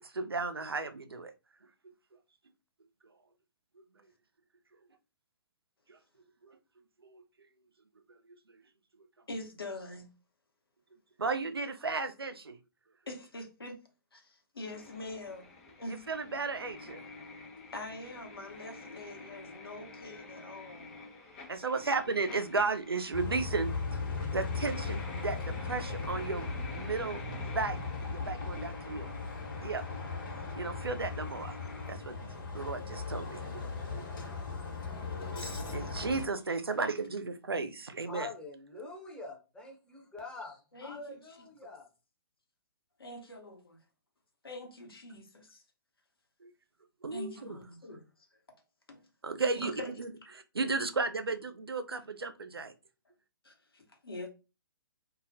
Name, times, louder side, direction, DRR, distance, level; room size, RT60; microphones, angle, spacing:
voice 1, 0.0-1.3 3.8-3.9 5.9-6.0 6.4-6.6 7.0-7.2 8.1-8.2 11.2-12.6 15.9-17.0 21.5-23.7 24.3-29.1 29.6-29.8 30.5-31.6 31.9-33.6 33.9-34.1 35.3-38.3 46.4-46.5 47.0-47.3 49.2-49.7 50.0-52.7, right 4 dB, 85° right, 0.4 m, -34 dB
voice 2, 9.3-10.1 13.1-13.8 14.1-15.5 15.8-16.0 17.7-20.9 34.9-35.7 40.7-41.2 43.0-43.8 44.4-45.6 47.1-48.0 48.5-48.6 48.9-49.1 49.6-49.9 53.4-54.3, left 2 dB, 80° left, 0.9 m, -44 dB
sound 1, 14.6-31.9, left 3 dB, 40° left, 0.9 m, -49 dB
Bus, 23.1-36.3, left 4 dB, 60° left, 1.1 m, -38 dB
voice 3, 38.1-40.5 40.8-41.9, left 3 dB, 5° left, 0.6 m, -45 dB
2.3 x 2.0 x 2.6 m
figure-of-eight pair, 125°, 12 cm